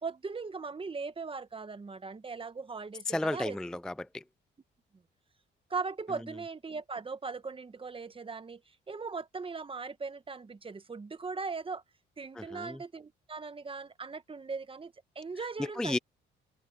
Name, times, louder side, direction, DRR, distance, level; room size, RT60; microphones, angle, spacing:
voice 1, 0.0-3.6 5.7-11.8 12.2-16.0, right 4 dB, 25° right, 1.2 m, -39 dB
voice 2, 3.1-4.2 12.4-12.8 15.6-16.0, left 2 dB, 5° left, 0.3 m, -33 dB
cardioid pair, 90°, 20 cm